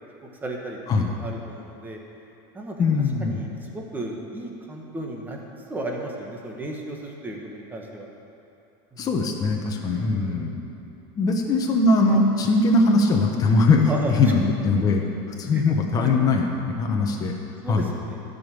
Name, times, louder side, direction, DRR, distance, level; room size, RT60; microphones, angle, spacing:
voice 1, 0.4-2.0 2.5-2.8 3.2-8.1 8.9-9.1 9.9-10.6 11.3-11.4 12.1-12.2 13.9-14.1 15.5-15.6 16.0-16.1 17.6-18.2, right 2 dB, 15° right, 0 dB, 1.5 m, -35 dB
voice 2, 2.8-3.4 9.0-10.6 11.2-13.9 14.2-15.1 15.4-17.3 17.7-17.9, left 3 dB, 30° left, 1 dB, 1.2 m, -21 dB
13.5 x 5.4 x 7.6 m, 2.7 s
supercardioid pair, 140°, 13 cm